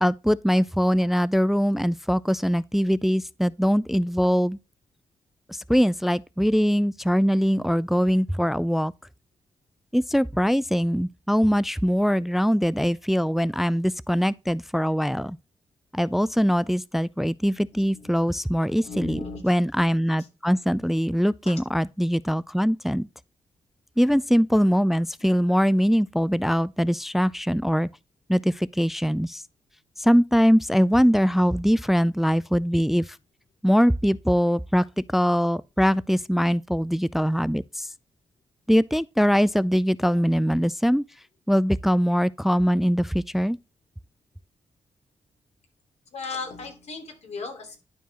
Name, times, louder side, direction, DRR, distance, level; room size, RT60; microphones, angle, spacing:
voice 1, 0.0-4.6 5.5-8.9 9.9-15.4 15.9-23.1 24.0-27.9 28.3-29.4 30.0-33.2 33.6-34.8 35.1-37.9 38.7-41.0 41.5-43.6, equal, ahead, 0.3 m, -22 dB
voice 2, 17.7-18.3 18.8-19.4 20.1-20.3 21.4-21.5 46.1-47.8, left 4 dB, 70° left, 3.0 m, -37 dB
11.5 x 4.6 x 2.9 m
cardioid pair, 75°, 12 cm